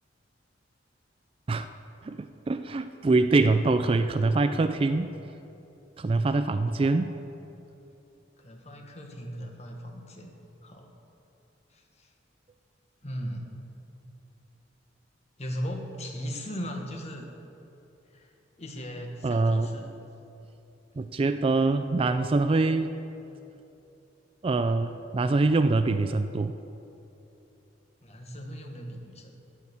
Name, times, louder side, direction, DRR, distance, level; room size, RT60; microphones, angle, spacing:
voice 1, 2.0-5.1 6.0-7.1 19.2-19.8 21.0-22.9 24.4-26.6, right 3 dB, 30° right, 10 dB, 0.3 m, -24 dB
voice 2, 8.4-10.3 10.6-10.9 11.7-12.1 13.0-13.6 15.4-17.3 18.1-18.3 18.6-19.9 28.0-29.4, equal, 35° left, 3 dB, 1.5 m, -38 dB
17.0 x 6.4 x 7.1 m, 2.9 s
head